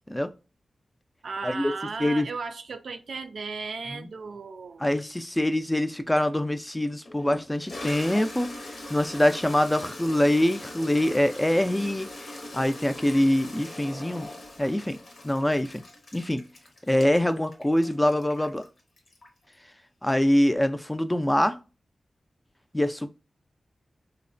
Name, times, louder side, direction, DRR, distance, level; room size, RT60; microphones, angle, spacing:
voice 1, 1.2-4.8, right 4 dB, 75° right, 0.3 m, -35 dB
voice 2, 4.8-8.5 8.9-12.1 12.5-14.3 14.6-15.0 15.2-15.8 16.1-16.5 16.9-18.6 20.0-21.6 22.7-23.1, left 1 dB, 15° left, 0.3 m, -24 dB
Toilet flush, 6.3-6.4 7.1-19.5, left 1 dB, 70° left, 0.8 m, -41 dB
3.0 x 2.1 x 2.5 m
cardioid pair, 40°, 0 cm